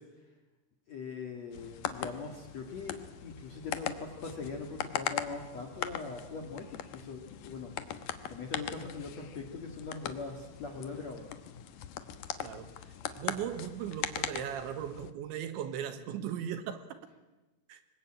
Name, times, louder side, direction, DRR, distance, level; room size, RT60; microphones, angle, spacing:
voice 1, 0.9-11.3, left 4 dB, 50° left, 3 dB, 2.2 m, -41 dB
sound 1, 1.5-15.1, left 10 dB, 80° left, 1.9 m, -40 dB
voice 2, 12.4-12.7 13.2-16.8 17.7-17.8, right 9 dB, 70° right, 9 dB, 3.6 m, -37 dB
26.0 x 22.5 x 8.9 m, 1.1 s
omnidirectional pair, 5.7 m